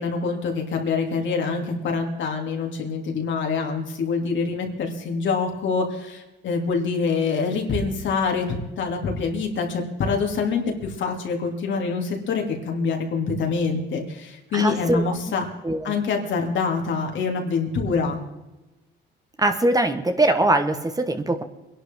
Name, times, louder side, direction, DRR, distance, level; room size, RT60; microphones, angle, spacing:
voice 1, 0.0-15.5 15.8-18.2, left 4 dB, 70° left, 1 dB, 2.9 m, -25 dB
voice 2, 14.5-15.0 15.6-15.9 19.4-21.4, right 2 dB, 20° right, 7 dB, 1.5 m, -21 dB
22.5 x 11.5 x 3.8 m, 1.0 s
cardioid pair, 90°, 20 cm